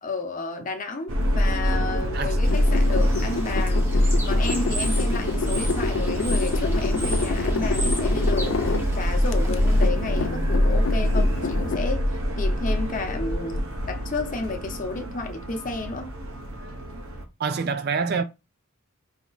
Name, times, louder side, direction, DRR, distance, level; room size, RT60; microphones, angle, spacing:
voice 1, 0.0-3.9 4.2-12.0 12.4-16.1, left 3 dB, 35° left, 0.8 m, -32 dB
Subway metro underground, 1.1-17.2, equal, 75° right, 0.9 m, -24 dB
sound 1, 2.4-8.9 9.3-11.8, left 4 dB, 60° left, 0.4 m, -30 dB
Bird / Water, 2.4-9.9, right 1 dB, 10° right, 0.7 m, -37 dB
voice 2, 17.4-18.2, right 5 dB, 45° right, 0.4 m, -26 dB
4.3 x 2.9 x 3.9 m
head